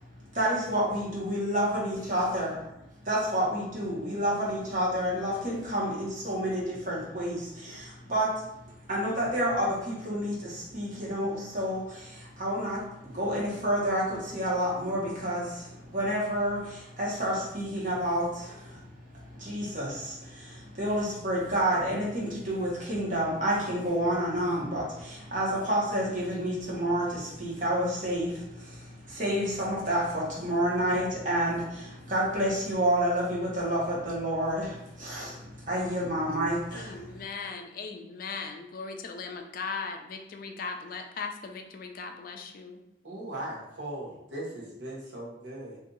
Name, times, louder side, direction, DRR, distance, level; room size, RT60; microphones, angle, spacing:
voice 1, 0.3-2.6 3.0-8.4 8.9-18.9 19.1-37.2, equal, 45° right, -6 dB, 1.2 m, -29 dB
voice 2, 36.7-42.8, left 4 dB, 50° left, 5 dB, 0.3 m, -38 dB
voice 3, 43.0-45.8, right 1 dB, 75° right, -5 dB, 1.0 m, -38 dB
2.6 x 2.6 x 3.8 m, 0.82 s
head